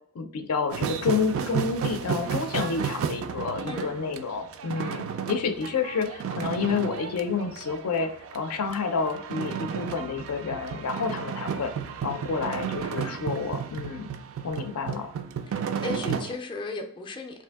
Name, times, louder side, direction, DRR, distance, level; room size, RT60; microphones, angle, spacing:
voice 1, 0.1-11.7 12.0-14.1 14.4-15.1, left 5 dB, 80° left, 7 dB, 0.5 m, -29 dB
sound 1, 0.7-16.4, right 7 dB, 65° right, 0.3 m, -33 dB
voice 2, 3.7-4.0 15.5-17.4, left 3 dB, 20° left, 3 dB, 0.4 m, -36 dB
2.7 x 2.5 x 3.4 m, 0.64 s
head